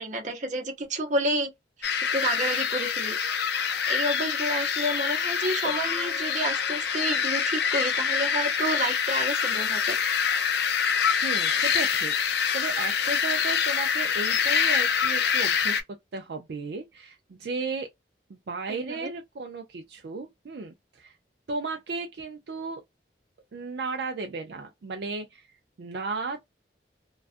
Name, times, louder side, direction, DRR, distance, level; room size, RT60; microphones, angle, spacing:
voice 1, 0.0-1.5 2.1-3.3 3.9-10.0 18.7-19.1, right 1 dB, 45° right, 0.7 m, -30 dB
sound 1, 1.8-15.8, left 7 dB, 65° left, 0.4 m, -26 dB
Piano, 5.6-8.6 9.2-9.3 10.0-10.2, left 5 dB, 20° left, 0.9 m, -44 dB
voice 2, 11.2-15.8 16.1-17.9 18.3-21.2 21.5-22.8 23.5-25.5 25.8-26.4, right 3 dB, 65° right, 0.4 m, -35 dB
2.3 x 2.3 x 2.4 m
head